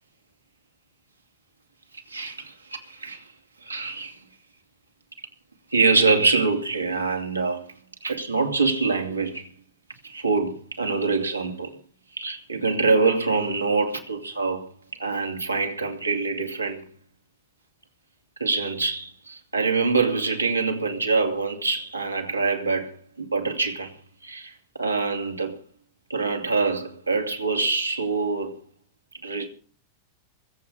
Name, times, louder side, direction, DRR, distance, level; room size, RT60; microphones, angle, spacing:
voice 1, 2.1-3.2 3.6-4.2 5.7-7.7 8.0-9.5 10.0-11.7 12.2-14.7 15.0-16.8 18.4-23.9 24.2-25.6 26.1-28.5 29.2-29.5, right 4 dB, 85° right, 2.9 m, -25 dB
23.0 x 8.5 x 5.4 m
figure-of-eight pair, 90°, 0 cm